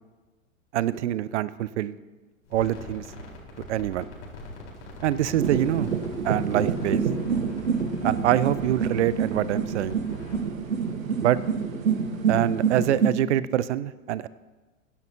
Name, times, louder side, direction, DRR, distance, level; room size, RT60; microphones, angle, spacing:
voice 1, 0.7-2.0 2.5-3.0 3.7-4.1 5.0-5.9 6.2-7.0 8.0-10.0 11.2-11.4 12.3-14.3, right 12 dB, 55° right, 17 dB, 0.6 m, -25 dB
sound 1, 2.5-11.1, left 1 dB, 55° left, 4.1 m, -42 dB
sound 2, 5.3-13.1, right 6 dB, 70° right, 1.4 m, -27 dB
23.0 x 10.5 x 2.9 m, 1.3 s
figure-of-eight pair, 95°, 41 cm